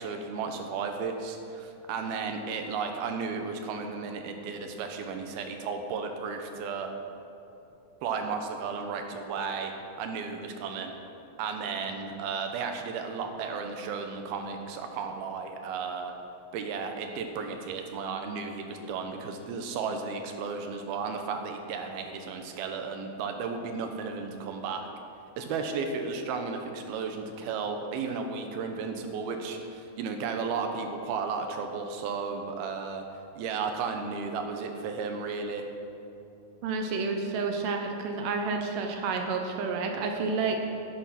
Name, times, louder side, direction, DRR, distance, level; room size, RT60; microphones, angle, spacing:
voice 1, 0.0-6.9 8.0-9.7 10.0-10.9 11.4-16.1 16.5-24.9 25.4-33.0 33.4-35.6, right 5 dB, 85° right, 5 dB, 2.9 m, -34 dB
voice 2, 36.6-40.7, right 4 dB, 70° right, 3 dB, 2.4 m, -30 dB
11.0 x 11.0 x 5.9 m, 2.7 s
omnidirectional pair, 4.3 m